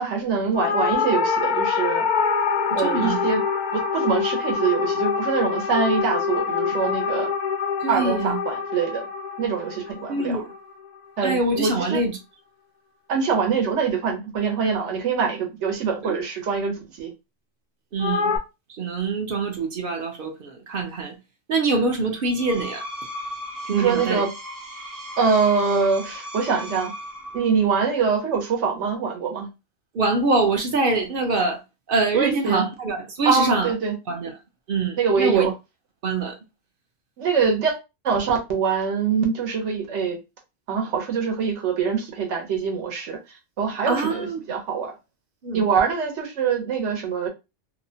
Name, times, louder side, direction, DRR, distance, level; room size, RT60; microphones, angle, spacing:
voice 1, 0.0-2.0 2.7-3.4 3.7-7.3 7.9-9.1 9.4-10.4 11.2-12.0 13.1-17.1 23.7-24.3 25.2-26.9 27.3-29.5 32.1-32.7 33.2-34.0 35.0-35.5 37.2-37.8 38.0-40.2 40.7-43.2 43.6-44.9 45.5-47.3, right 5 dB, 75° right, 1.1 m, -24 dB
sound 1, 0.5-11.1 18.0-18.4, left 6 dB, 65° left, 0.4 m, -25 dB
voice 2, 2.7-3.2 7.8-8.4 10.1-10.5 11.2-12.2 16.0-16.2 17.9-18.3 18.8-21.1 21.5-22.8 23.7-24.2 29.9-31.6 31.9-33.7 34.1-34.3 34.7-35.5 36.0-36.3 43.8-44.4 45.4-45.6, right 3 dB, 55° right, 0.8 m, -24 dB
Screech, 22.1-27.6, equal, 30° right, 0.4 m, -36 dB
2.8 x 2.1 x 2.7 m
omnidirectional pair, 1.3 m